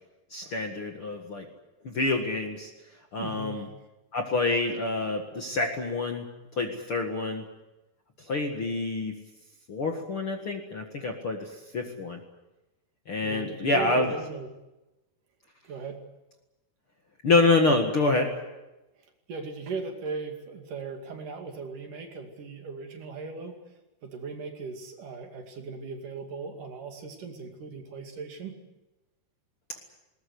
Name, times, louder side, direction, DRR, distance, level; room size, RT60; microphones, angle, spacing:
voice 1, 0.3-1.5 1.8-2.7 3.1-3.7 4.1-6.3 6.5-7.4 8.2-9.1 9.7-12.2 13.1-14.1 17.2-18.3, left 3 dB, 45° left, 3 dB, 2.0 m, -27 dB
voice 2, 3.2-3.7 13.2-14.5 15.6-16.0 19.3-23.6 24.0-28.5, right 4 dB, 55° right, 4 dB, 3.8 m, -38 dB
20.5 x 20.0 x 9.5 m, 1.0 s
omnidirectional pair, 4.5 m